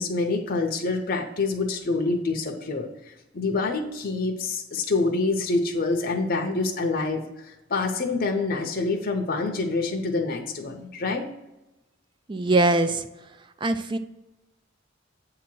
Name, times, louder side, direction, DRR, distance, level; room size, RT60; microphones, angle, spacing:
voice 1, 0.0-11.3, left 3 dB, 45° left, 2 dB, 0.7 m, -26 dB
voice 2, 12.3-13.1 13.6-14.0, right 2 dB, 25° right, 9 dB, 0.4 m, -22 dB
7.7 x 2.9 x 6.1 m, 0.96 s
head